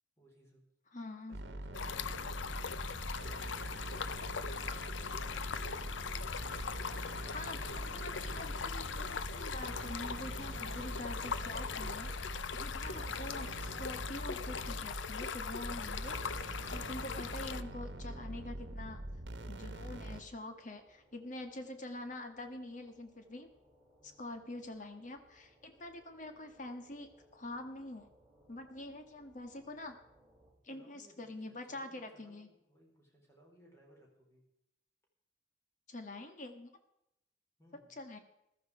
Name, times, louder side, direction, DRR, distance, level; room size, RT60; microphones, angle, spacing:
voice 1, 0.2-0.6 1.3-5.9 24.0-24.2 30.7-34.4 37.6-38.0, right 1 dB, 15° left, -1 dB, 4.2 m, -63 dB
voice 2, 0.9-1.4 7.3-12.3 12.6-16.2 16.4-19.0 19.5-23.5 24.0-28.1 28.5-29.9 30.6-32.5 35.9-36.7 37.9-38.2, left 2 dB, 45° left, 6 dB, 1.6 m, -46 dB
sound 1, 1.3-20.2, right 1 dB, 70° right, 1.3 m, -44 dB
Stream, 1.7-17.6, left 6 dB, 85° left, 0.7 m, -40 dB
sound 2, 12.4-30.5, equal, 10° right, 3.2 m, -67 dB
14.5 x 13.0 x 4.9 m, 0.82 s
head